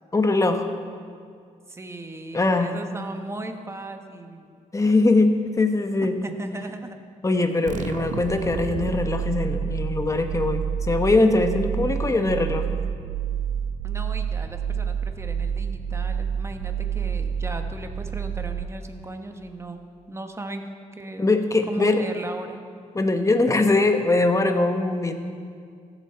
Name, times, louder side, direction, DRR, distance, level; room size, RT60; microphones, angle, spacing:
voice 1, 0.1-0.7 2.3-2.7 4.7-6.2 7.2-12.7 21.2-22.0 22.9-25.1, left 2 dB, 25° left, 7 dB, 1.0 m, -21 dB
voice 2, 1.7-4.5 6.0-7.0 13.8-20.6 20.9-21.3 21.7-22.6, right 2 dB, 20° right, 6 dB, 1.0 m, -37 dB
sound 1, 7.7-19.1, right 8 dB, 65° right, 0.5 m, -29 dB
15.0 x 7.4 x 4.4 m, 2.2 s
cardioid pair, 80°, 14 cm